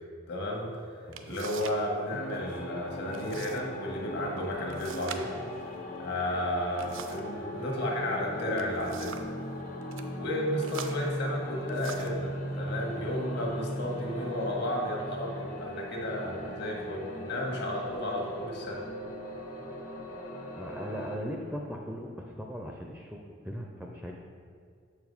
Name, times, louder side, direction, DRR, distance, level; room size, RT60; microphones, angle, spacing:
voice 1, 0.3-0.8 1.3-5.3 6.0-9.2 10.2-18.8, left 1 dB, 60° left, -1 dB, 1.4 m, -33 dB
sound 1, 0.6-0.7 1.1-1.9 2.1-2.6 3.1-3.6 3.9-4.0 4.7-7.4 8.3-9.4 9.8-10.1 10.6-12.3 13.0-13.2 13.7-14.2, right 7 dB, 80° right, 0.5 m, -44 dB
sound 2, 2.1-21.2, equal, 45° left, 1.0 m, -39 dB
voice 2, 20.6-24.1, equal, 5° right, 0 dB, 0.4 m, -39 dB
7.0 x 4.9 x 5.4 m, 2.2 s
head